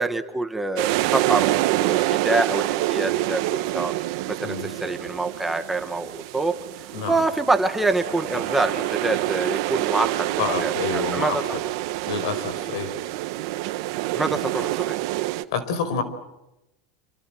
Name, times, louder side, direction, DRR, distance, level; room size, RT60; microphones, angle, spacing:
voice 1, 0.0-3.9 4.3-11.4 14.1-15.0, right 2 dB, 5° right, 7 dB, 1.2 m, -26 dB
sound 1, 0.8-15.4, right 17 dB, 55° right, 1.4 m, -27 dB
voice 2, 6.9-7.2 10.4-11.6 12.1-12.9 15.5-16.0, left 5 dB, 70° left, 12 dB, 5.0 m, -28 dB
28.0 x 27.0 x 7.7 m, 0.92 s
supercardioid pair, 170°, 3 cm